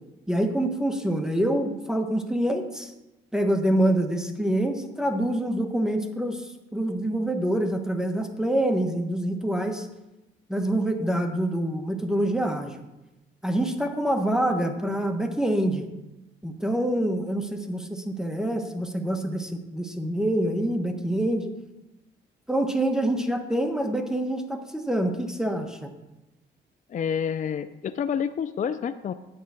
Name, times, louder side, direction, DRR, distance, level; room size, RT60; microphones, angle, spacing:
voice 1, 0.3-2.9 3.3-9.9 10.5-12.8 13.4-15.9 16.4-21.5 22.5-25.9, right 1 dB, 5° right, 4 dB, 1.2 m, -26 dB
voice 2, 26.9-29.1, left 7 dB, 40° left, 11 dB, 0.4 m, -28 dB
9.6 x 5.5 x 7.8 m, 0.98 s
cardioid pair, 90°, 20 cm